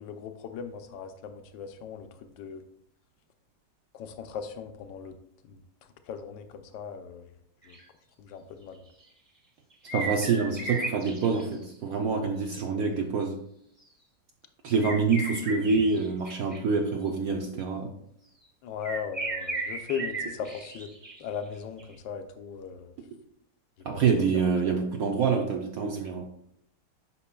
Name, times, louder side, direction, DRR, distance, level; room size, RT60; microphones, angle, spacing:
voice 1, 0.0-2.6 3.9-5.1 5.4-5.6 6.1-7.2 7.6-7.8 8.2-8.8 18.6-20.9 21.2-22.9 23.9-24.0 24.3-24.5, left 7 dB, 90° left, 8 dB, 1.3 m, -38 dB
sound 1, 7.6-7.8 8.9-9.0 9.7-11.5 14.8-16.6 18.8-21.4 21.8-21.9, right 2 dB, 15° right, 1.2 m, -35 dB
voice 2, 9.9-13.3 14.6-17.9 23.8-26.3, right 5 dB, 65° right, 3 dB, 0.9 m, -26 dB
8.4 x 5.4 x 2.2 m, 0.71 s
omnidirectional pair, 1.9 m